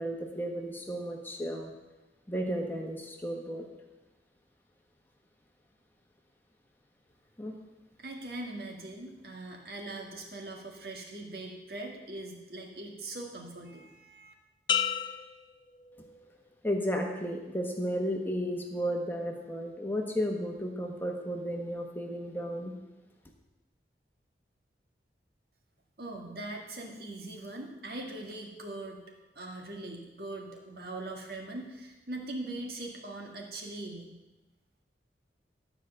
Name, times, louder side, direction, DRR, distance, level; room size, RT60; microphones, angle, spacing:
voice 1, 0.0-1.7 2.3-3.7 7.4-7.6 16.6-22.7, equal, 10° left, 1 dB, 1.2 m, -33 dB
voice 2, 8.0-14.3 26.0-29.0 29.4-34.2, right 2 dB, 60° right, 0 dB, 1.9 m, -41 dB
sound 1, 14.7-16.5 17.0-17.4, left 8 dB, 25° left, 0.3 m, -33 dB
12.5 x 5.0 x 7.8 m, 1.1 s
head